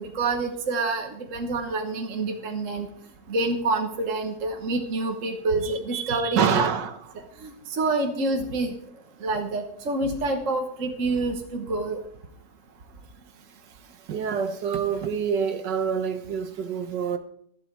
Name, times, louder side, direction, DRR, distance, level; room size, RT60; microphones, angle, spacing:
voice 1, 0.0-2.9 3.3-6.7 7.4-8.7 9.2-12.0, right 3 dB, 45° right, 1.5 m, -27 dB
voice 2, 5.6-7.0 14.1-17.2, right 7 dB, 70° right, 1.7 m, -27 dB
14.0 x 11.0 x 4.7 m
omnidirectional pair, 2.0 m